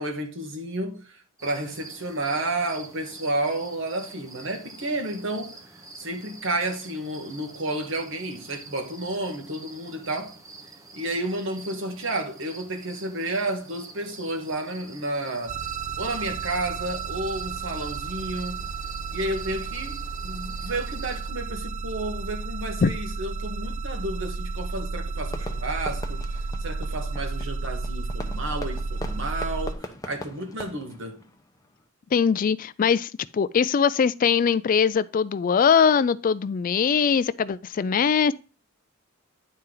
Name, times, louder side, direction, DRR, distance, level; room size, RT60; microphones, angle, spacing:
voice 1, 0.0-5.6 6.0-10.4 10.9-15.6 16.0-18.7 19.1-31.2, right 2 dB, 65° right, 1.6 m, -31 dB
sound 1, 1.4-21.3, right 3 dB, 15° right, 1.0 m, -46 dB
sound 2, 15.5-29.7, right 4 dB, 35° right, 0.4 m, -32 dB
Fireworks, 25.3-31.8, left 1 dB, 15° left, 0.8 m, -41 dB
voice 2, 32.1-38.3, left 6 dB, 40° left, 0.3 m, -21 dB
10.0 x 4.4 x 3.8 m
head